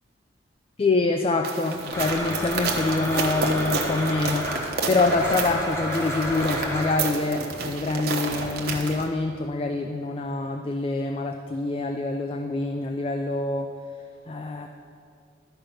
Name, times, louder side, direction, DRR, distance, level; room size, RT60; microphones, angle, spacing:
voice 1, 0.8-13.7 14.3-14.7, left 3 dB, 30° left, 5 dB, 0.3 m, -26 dB
sound 1, 1.4-9.1, right 3 dB, 55° right, 0.9 m, -30 dB
Domestic sounds home sounds, 1.9-7.0, equal, 15° left, 1.1 m, -31 dB
11.5 x 5.0 x 5.8 m, 2.3 s
head